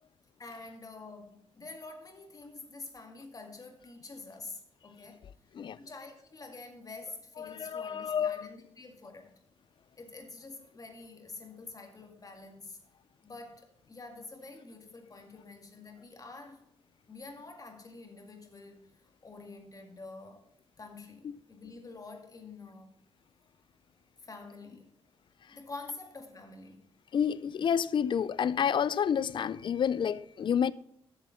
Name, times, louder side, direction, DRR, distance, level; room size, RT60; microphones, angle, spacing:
voice 1, 0.4-5.2 5.6-9.3 10.0-12.8 13.2-16.6 17.1-18.9 19.2-20.4 20.8-22.9 24.2-24.9 25.5-26.9, left 3 dB, 35° left, 2.0 m, -47 dB
voice 2, 7.4-8.5 21.2-21.4 27.1-30.7, left 8 dB, 50° left, 0.4 m, -29 dB
8.5 x 6.8 x 5.7 m
cardioid pair, 70°, 11 cm